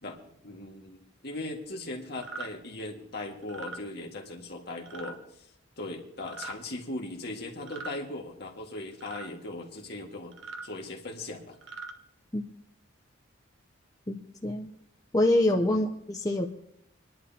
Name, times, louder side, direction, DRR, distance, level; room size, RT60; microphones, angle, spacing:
voice 1, 0.0-5.5 5.8-10.3 10.6-11.6 15.7-15.9, left 2 dB, 50° left, 1 dB, 1.8 m, -39 dB
sound 1, 2.2-2.5 3.4-3.8 4.9-5.1 6.2-6.6 7.6-8.0 9.0-9.3 10.3-10.7 11.5-11.9, right 4 dB, 65° right, 1.1 m, -41 dB
voice 2, 14.1-14.7 15.1-16.5, left 1 dB, 20° left, 2 dB, 0.6 m, -26 dB
26.0 x 11.0 x 2.8 m, 0.74 s
head